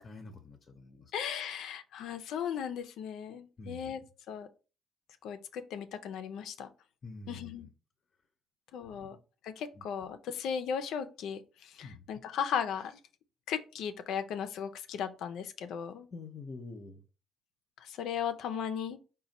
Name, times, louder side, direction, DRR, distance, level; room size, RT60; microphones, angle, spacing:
voice 1, 0.0-1.1 3.6-3.9 7.0-7.7 9.0-9.2 9.7-9.8 11.8-12.1 16.1-17.0, left 3 dB, 45° left, 0.6 m, -46 dB
voice 2, 1.1-4.0 4.3-4.5 5.2-6.7 7.3-7.7 8.7-9.2 9.4-13.0 13.5-16.1 17.8-19.0, left 8 dB, 85° left, 0.4 m, -36 dB
4.2 x 2.2 x 4.0 m
cardioid pair, 90°, 0 cm